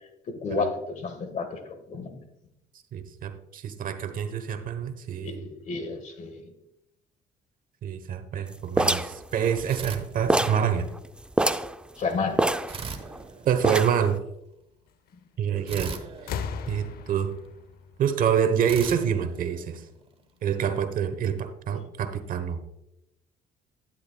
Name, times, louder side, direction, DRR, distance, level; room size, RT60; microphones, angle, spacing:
voice 1, 0.3-2.2 5.2-6.5 12.0-12.4, left 4 dB, 45° left, 7 dB, 1.5 m, -31 dB
voice 2, 2.9-5.4 7.8-10.9 13.4-14.2 15.4-15.9 16.7-17.3 18.0-19.9 20.4-22.6, right 8 dB, 55° right, 11 dB, 1.1 m, -26 dB
sound 1, 8.8-10.0 10.3-10.7 11.0-11.1 11.3-11.7 12.4-13.2 13.6-14.1, right 1 dB, 5° right, 0.4 m, -25 dB
sound 2, 9.7-10.8 12.7-14.1 15.7-17.4 18.6-20.2, right 5 dB, 35° right, 1.2 m, -40 dB
sound 3, 15.5-15.8 16.2-18.9 20.0-20.1, left 6 dB, 65° left, 0.6 m, -37 dB
12.0 x 10.0 x 2.3 m, 0.82 s
cardioid pair, 110°, 17 cm